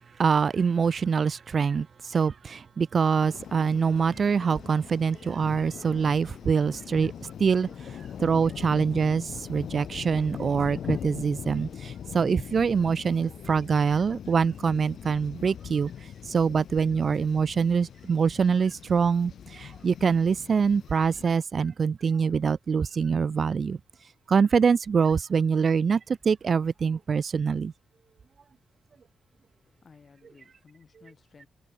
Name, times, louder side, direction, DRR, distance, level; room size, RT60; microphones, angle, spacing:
voice 1, 0.2-23.8 24.3-27.7, right 6 dB, 45° right, 0.3 m, -25 dB
sound 1, 3.2-21.3, left 9 dB, 65° left, 1.8 m, -41 dB
voice 2, 29.5-31.5, left 5 dB, 40° left, 4.9 m, -56 dB
cardioid pair, 125°, 0 cm